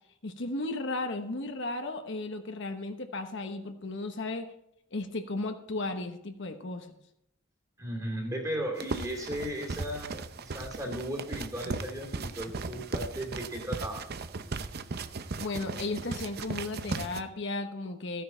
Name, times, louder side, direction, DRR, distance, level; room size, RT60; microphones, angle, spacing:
voice 1, 0.2-4.5 4.9-7.0 15.4-18.2, left 2 dB, 60° left, 6 dB, 1.0 m, -35 dB
voice 2, 7.8-14.1, equal, 15° right, 2 dB, 2.6 m, -36 dB
sound 1, 8.8-17.2, right 3 dB, 50° right, 0.6 m, -37 dB
14.0 x 9.4 x 4.5 m, 0.78 s
head